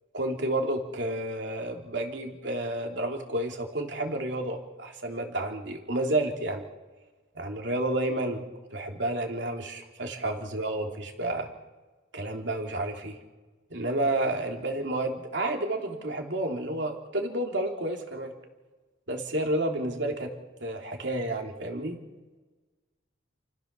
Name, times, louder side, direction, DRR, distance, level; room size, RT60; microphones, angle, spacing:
voice 1, 0.1-6.6 7.3-8.5 8.7-11.5 12.1-13.2 13.7-18.3 19.1-20.3 20.6-22.0, right 1 dB, 65° right, 3 dB, 3.2 m, -30 dB
29.5 x 15.0 x 6.9 m, 1.3 s
head